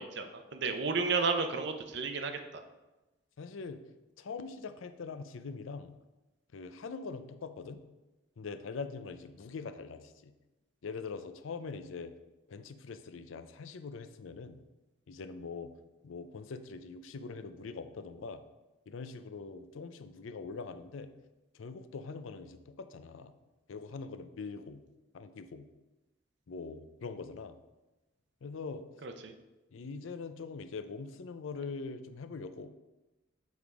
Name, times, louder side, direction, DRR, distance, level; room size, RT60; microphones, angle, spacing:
voice 1, 0.0-2.6 29.0-29.3, right 4 dB, 55° right, 7 dB, 0.6 m, -33 dB
voice 2, 3.4-3.8 4.2-5.9 6.5-7.8 8.4-10.3 10.8-12.1 12.5-14.6 15.1-15.7 16.0-18.4 18.9-21.1 21.5-23.3 23.7-24.8 25.1-25.7 26.5-27.6 28.4-28.8 29.7-32.7, left 4 dB, 75° left, 10 dB, 0.5 m, -43 dB
7.9 x 3.5 x 4.8 m, 1.1 s
head